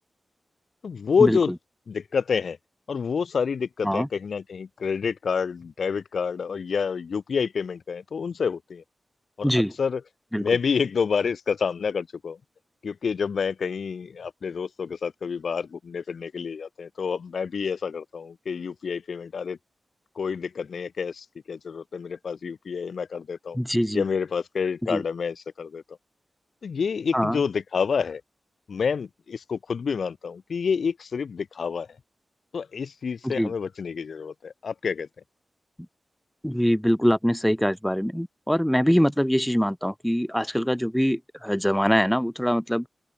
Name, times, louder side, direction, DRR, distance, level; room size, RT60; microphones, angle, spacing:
voice 1, 0.8-1.5 1.9-2.6 2.9-8.8 9.4-9.5 9.8-10.0 10.4-12.4 12.8-19.6 20.2-23.6 23.9-25.8 26.6-28.2 28.7-31.9 32.5-35.1, left 6 dB, 70° left, 2.8 m, -28 dB
voice 2, 9.4-9.7 10.3-10.5 23.5-24.0 24.9-25.0 27.1-27.4 33.2-33.5 36.4-42.9, equal, ahead, 1.3 m, -23 dB
open air
wide cardioid pair, 150°, 0 cm